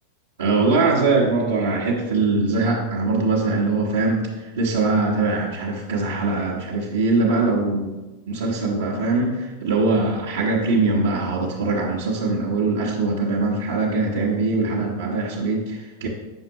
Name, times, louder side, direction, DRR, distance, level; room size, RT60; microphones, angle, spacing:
voice 1, 0.4-7.9 8.3-16.1, right 3 dB, 65° right, -4 dB, 1.1 m, -22 dB
8.7 x 5.9 x 2.9 m, 1.1 s
figure-of-eight pair, 90°, 0 cm